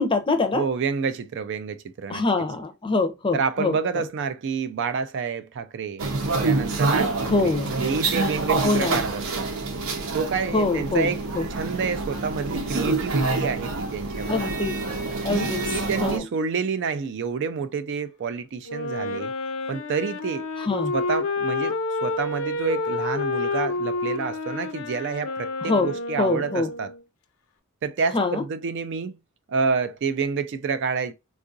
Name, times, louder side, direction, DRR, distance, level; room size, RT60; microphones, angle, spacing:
voice 1, 0.0-0.7 2.1-4.0 7.3-7.7 8.6-9.0 10.5-11.5 14.3-14.7 15.2-15.6 16.0-16.2 20.6-20.9 25.6-26.7 28.1-28.4, left 3 dB, 25° left, 0.5 m, -24 dB
voice 2, 0.5-2.2 3.3-6.0 6.4-9.5 10.1-11.2 11.5-14.6 15.3-19.3 19.7-20.5 20.9-26.9 27.8-29.2 29.5-31.1, right 5 dB, 60° right, 0.4 m, -28 dB
sound 1, 6.0-16.2, right 3 dB, 85° right, 0.8 m, -27 dB
Wind instrument woodwind instrument, 18.6-27.0, left 3 dB, 75° left, 0.5 m, -29 dB
3.7 x 2.4 x 2.5 m
head